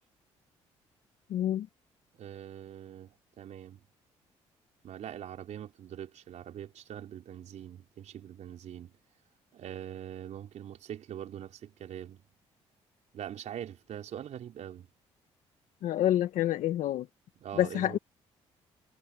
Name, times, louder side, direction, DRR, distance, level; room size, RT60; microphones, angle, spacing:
voice 1, 1.3-1.7 15.8-17.1 17.6-18.0, left 12 dB, 75° left, 1.5 m, -27 dB
voice 2, 2.1-3.8 4.8-8.9 9.5-12.2 13.1-14.9 17.4-18.0, right 10 dB, 65° right, 4.6 m, -43 dB
supercardioid pair, 65°, 13 cm